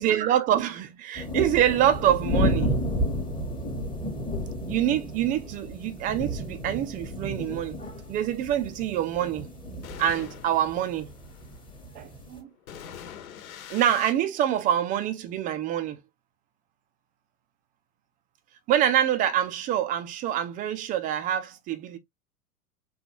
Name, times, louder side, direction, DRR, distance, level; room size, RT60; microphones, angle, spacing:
voice 1, 0.0-2.7 4.7-7.8 8.1-9.5 10.0-11.1 11.9-12.5 13.7-16.0 18.7-22.0, right 11 dB, 20° right, 0.4 m, -26 dB
sound 1, 1.2-12.4, equal, 10° left, 1.1 m, -32 dB
sound 2, 9.0-14.1, left 8 dB, 65° left, 1.2 m, -45 dB
3.9 x 2.3 x 2.9 m
figure-of-eight pair, 90°, 45 cm